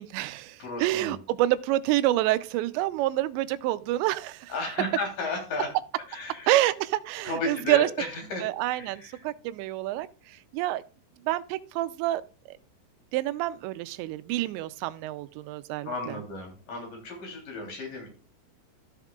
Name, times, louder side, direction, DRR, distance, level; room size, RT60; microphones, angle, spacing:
voice 1, 0.0-4.5 6.5-7.9 8.4-10.8 11.2-12.2 12.5-12.6 13.1-15.9, right 15 dB, 85° right, 2.8 m, -27 dB
voice 2, 0.6-1.2 4.5-5.7 6.1-6.5 7.2-9.2 15.8-18.1, left 2 dB, 50° left, 4.6 m, -34 dB
14.0 x 7.3 x 2.4 m
omnidirectional pair, 5.0 m